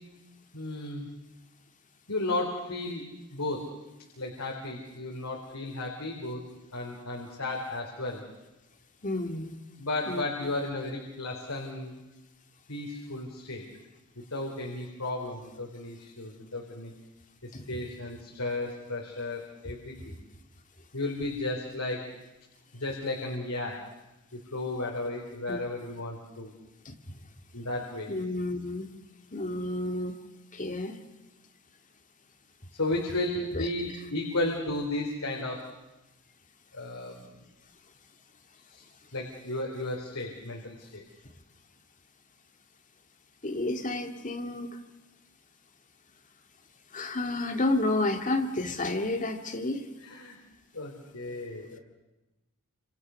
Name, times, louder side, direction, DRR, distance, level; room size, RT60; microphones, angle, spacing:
voice 1, 0.5-1.1 2.1-3.0 3.3-3.6 4.2-6.4 6.7-8.2 9.8-11.9 12.7-13.7 14.3-16.9 17.4-20.1 20.9-22.1 22.7-23.8 24.3-26.5 27.5-28.1 32.8-35.6 36.7-37.4 38.7-38.8 39.1-41.0 50.0-50.4 50.7-51.8, left 2 dB, 70° left, 0 dB, 4.2 m, -34 dB
voice 2, 9.0-9.6 10.1-10.2 17.5-17.8 25.5-25.6 26.9-27.2 28.1-28.9 29.3-30.1 30.5-31.0 33.5-33.7 43.4-44.7 46.9-49.9, left 2 dB, 35° left, 6 dB, 2.1 m, -30 dB
29.5 x 27.0 x 6.5 m, 1.0 s
head